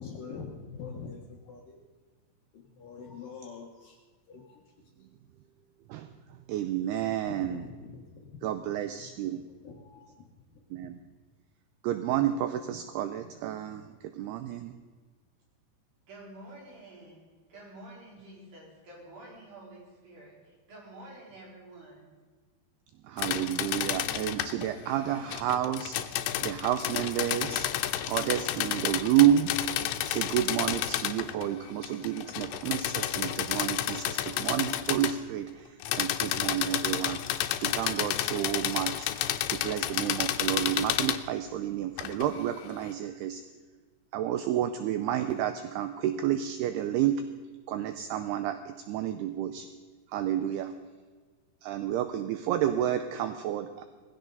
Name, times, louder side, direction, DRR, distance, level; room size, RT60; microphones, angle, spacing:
voice 1, 0.0-1.8 2.5-4.0 4.3-4.6 7.3-8.5 9.0-9.1 9.6-10.1, left 5 dB, 60° left, 0 dB, 2.5 m, -44 dB
voice 2, 6.5-7.6 8.4-9.4 10.7-11.0 11.8-14.7 23.0-26.1 26.4-27.7 28.1-29.5 30.0-37.2 37.6-39.1 39.5-43.4 44.1-47.2 47.7-49.7 50.1-50.7 51.6-53.8, right 11 dB, 80° right, 9 dB, 2.4 m, -30 dB
voice 3, 16.1-22.1, right 1 dB, 50° right, -4 dB, 6.1 m, -49 dB
sound 1, 23.2-24.7 25.3-31.5 31.8-35.2 35.8-41.2 42.0-42.3, left 12 dB, 85° left, 3.0 m, -31 dB
19.5 x 16.0 x 4.0 m, 1.5 s
omnidirectional pair, 5.3 m